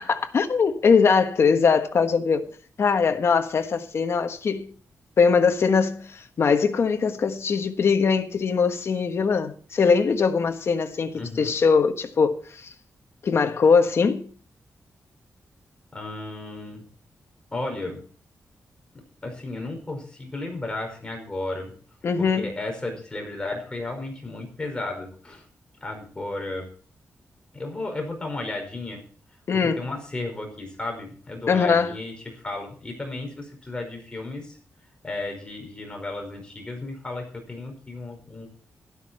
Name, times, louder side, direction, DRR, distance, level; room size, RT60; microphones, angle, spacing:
voice 1, 0.1-2.5 2.8-4.7 5.2-12.7 13.2-14.3 22.0-22.5 29.5-29.9 31.5-31.9, left 5 dB, 55° left, 1.4 m, -21 dB
voice 2, 11.1-11.5 15.9-16.9 17.5-18.0 18.9-21.7 22.2-25.5 25.8-26.7 27.5-29.0 29.6-34.6 35.0-38.5, left 2 dB, 20° left, 5.1 m, -34 dB
12.5 x 12.5 x 4.3 m
wide cardioid pair, 135°, 5 cm